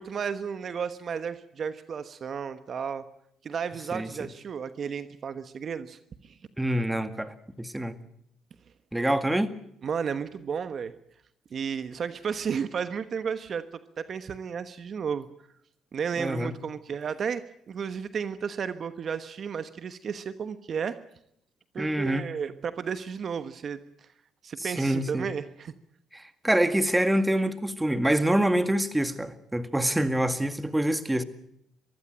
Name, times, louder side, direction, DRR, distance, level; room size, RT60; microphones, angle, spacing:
voice 1, 0.0-3.0 3.4-6.4 9.8-10.9 11.5-13.6 14.0-15.3 15.9-21.0 21.7-23.8 24.4-25.7, right 6 dB, 50° right, 1.1 m, -33 dB
voice 2, 6.6-8.0 8.9-9.5 16.2-16.5 21.8-22.2 24.6-25.3 26.1-31.2, right 1 dB, 10° right, 1.9 m, -26 dB
23.0 x 15.5 x 9.0 m
supercardioid pair, 65°, 0 cm